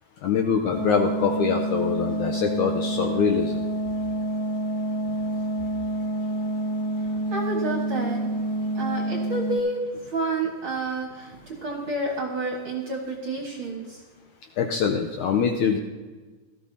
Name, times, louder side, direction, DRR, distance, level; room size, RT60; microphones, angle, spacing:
voice 1, 0.2-3.6 14.6-15.8, left 6 dB, 75° left, 3 dB, 1.8 m, -24 dB
sound 1, 0.7-9.6, right 1 dB, 50° left, 2.5 m, -28 dB
voice 2, 7.1-8.2 8.7-14.0, right 2 dB, 50° right, 0 dB, 1.8 m, -29 dB
18.0 x 13.5 x 2.8 m, 1.3 s
omnidirectional pair, 4.2 m